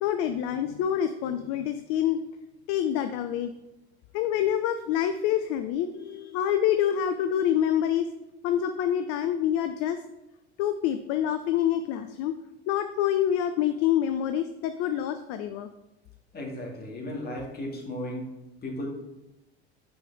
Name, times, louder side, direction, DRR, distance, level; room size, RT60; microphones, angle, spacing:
voice 1, 0.0-2.2 2.7-3.5 4.1-8.1 8.4-10.0 10.6-12.4 12.7-15.7, left 10 dB, 45° left, 9 dB, 0.5 m, -26 dB
voice 2, 16.3-18.3 18.6-18.9, left 1 dB, 30° left, -2 dB, 2.1 m, -35 dB
6.2 x 4.7 x 4.6 m, 0.96 s
figure-of-eight pair, 65°, 34 cm